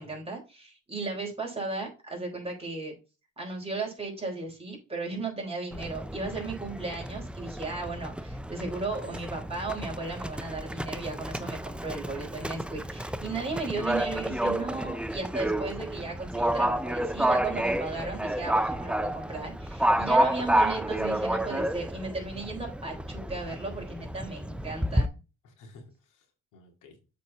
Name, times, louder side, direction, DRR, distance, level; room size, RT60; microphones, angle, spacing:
voice 1, 0.0-2.9 3.4-25.2, right 3 dB, 20° right, 0 dB, 3.8 m, -35 dB
Livestock farm animals working animals, 5.7-25.1, right 1 dB, 5° right, 0.4 m, -30 dB
voice 2, 8.7-9.1 13.7-13.8 20.1-20.2 25.4-26.3 26.5-27.0, left 3 dB, 85° left, 2 dB, 2.2 m, -51 dB
7.4 x 4.3 x 4.0 m, 0.31 s
cardioid pair, 90°, 30 cm